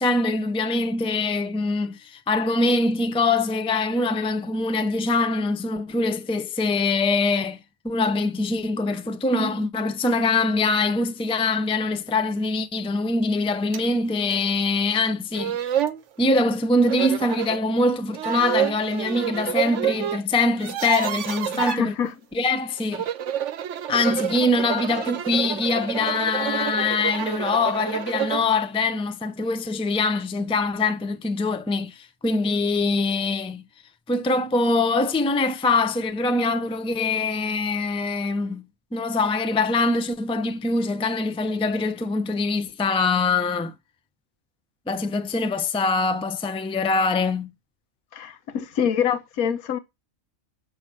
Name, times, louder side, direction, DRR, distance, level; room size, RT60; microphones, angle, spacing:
voice 1, 0.0-7.6 7.8-15.6 16.2-22.0 22.3-23.1 23.9-33.6 34.1-38.6 38.9-43.7 44.9-47.5, left 3 dB, 5° left, 0.4 m, -23 dB
sound 1, 13.7-13.9 14.3-14.4 15.1-15.2 15.3-16.0 16.9-17.6 18.1-20.2 20.5-21.8 22.8-28.5, right 9 dB, 60° right, 1.0 m, -28 dB
voice 2, 21.5-22.1 48.1-49.8, left 8 dB, 85° left, 1.4 m, -25 dB
7.3 x 6.2 x 7.4 m
omnidirectional pair, 1.5 m